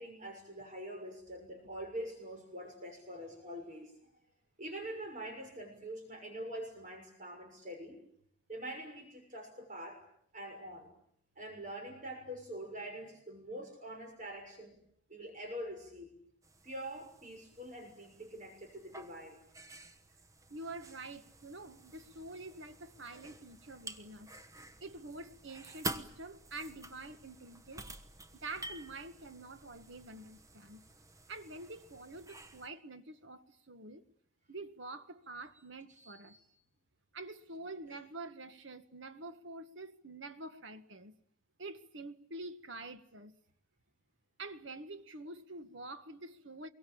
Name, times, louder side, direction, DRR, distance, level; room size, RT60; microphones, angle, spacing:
voice 1, 0.0-3.9 4.6-8.0 8.5-10.0 10.3-10.9 11.4-14.8 15.1-16.1 16.6-19.4 35.9-36.4, right 1 dB, 40° right, 6.4 m, -45 dB
sound 1, 16.4-32.7, right 2 dB, 15° right, 1.1 m, -49 dB
voice 2, 20.5-24.3 24.8-27.9 28.4-30.8 31.3-34.0 34.5-36.4 37.1-41.1 41.6-43.4 44.4-46.7, right 2 dB, 65° right, 1.6 m, -47 dB
25.5 x 23.0 x 8.7 m
head